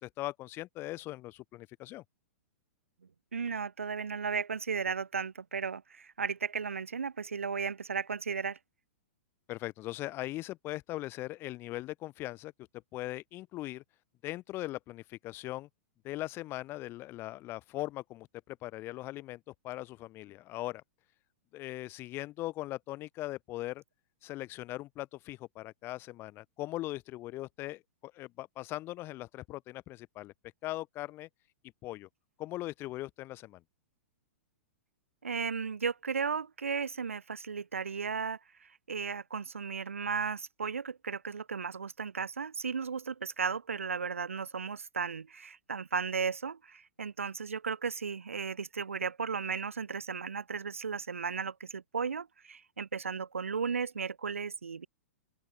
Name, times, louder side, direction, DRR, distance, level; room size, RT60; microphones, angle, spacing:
voice 1, 0.0-2.0 9.5-12.5 12.9-13.8 14.2-15.7 16.0-20.8 21.5-23.8 24.2-30.3 30.6-31.3 31.8-32.1 32.4-33.6, left 17 dB, 35° left, 3.5 m, -40 dB
voice 2, 3.3-8.6 35.2-54.9, right 5 dB, 80° right, 0.9 m, -35 dB
open air
figure-of-eight pair, 110°, 7 cm